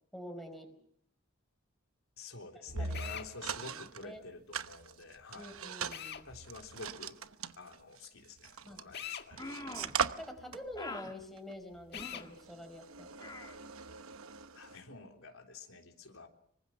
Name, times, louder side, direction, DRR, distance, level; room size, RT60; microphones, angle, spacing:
voice 1, 0.1-0.7 2.8-3.2 3.6-4.3 5.3-6.3 8.6-8.8 10.2-13.1, left 1 dB, ahead, 4 dB, 4.8 m, -47 dB
voice 2, 2.2-5.5 6.2-7.2 7.6-9.6 14.5-16.3, left 3 dB, 80° left, 3 dB, 3.5 m, -49 dB
sound 1, 2.7-4.0 4.5-9.0 9.3-14.8, right 6 dB, 80° right, 1.0 m, -41 dB
Drill, 2.9-3.3 5.9-6.3 8.9-9.3 11.9-12.3, left 9 dB, 50° left, 1.7 m, -42 dB
sound 2, 9.4-10.0 10.7-11.1 11.9-12.3 13.2-13.6, left 2 dB, 20° left, 2.2 m, -44 dB
25.5 x 24.0 x 5.9 m, 0.69 s
head